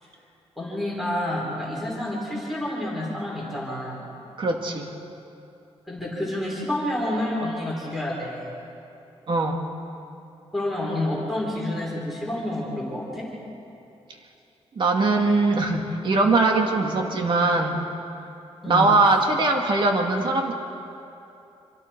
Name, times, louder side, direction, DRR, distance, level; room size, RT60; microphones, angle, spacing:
voice 1, 0.6-4.1 5.9-8.5 10.5-13.3 18.6-18.9, left 1 dB, ahead, -5 dB, 4.7 m, -29 dB
voice 2, 4.4-4.9 9.3-9.7 14.8-17.8 18.7-20.5, right 3 dB, 50° right, 2 dB, 2.1 m, -21 dB
27.0 x 26.5 x 4.6 m, 2.8 s
wide cardioid pair, 155°, 11 cm